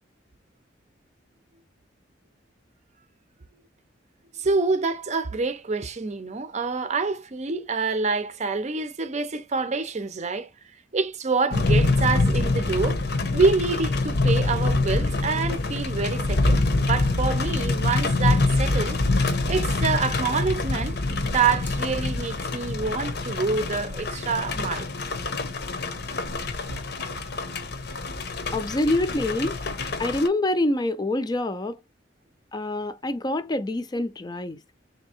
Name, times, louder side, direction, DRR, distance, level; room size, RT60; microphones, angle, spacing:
voice 1, 4.4-10.5 10.9-13.0 13.3-21.0 21.2-24.9, right 4 dB, 40° right, 0.6 m, -26 dB
sound 1, 11.5-30.3, left 2 dB, 60° left, 0.8 m, -25 dB
voice 2, 28.5-29.6 30.0-31.8 32.5-34.6, left 1 dB, 20° left, 0.4 m, -26 dB
3.5 x 2.7 x 4.2 m
head